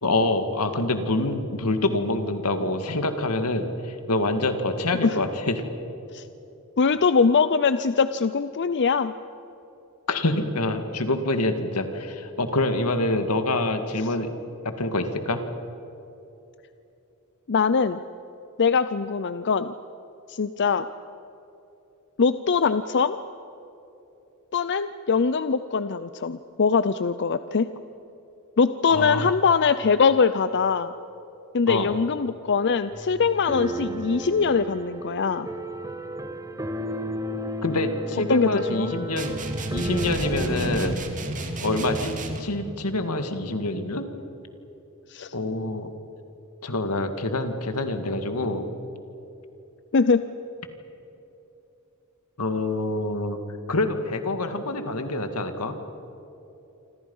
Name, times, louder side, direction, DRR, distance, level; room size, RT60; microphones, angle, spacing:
voice 1, 0.0-5.6 10.1-14.3 14.6-15.4 28.9-29.3 31.7-31.9 37.6-39.4 39.7-41.0 41.6-44.1 45.3-45.9 46.6-48.7 52.4-53.4 53.7-55.8, left 2 dB, 85° left, 7 dB, 2.1 m, -26 dB
voice 2, 6.8-9.1 17.5-18.0 18.6-19.7 20.3-20.9 22.2-23.2 24.5-27.7 28.6-30.9 31.5-35.5 38.3-38.9 45.1-45.3 49.9-50.2, left 5 dB, 55° left, 12 dB, 0.6 m, -22 dB
sound 1, 32.9-41.0, right 1 dB, 15° right, 1.2 m, -33 dB
sound 2, 39.2-42.6, right 2 dB, 35° right, 2.3 m, -32 dB
27.5 x 26.0 x 5.6 m, 3.0 s
head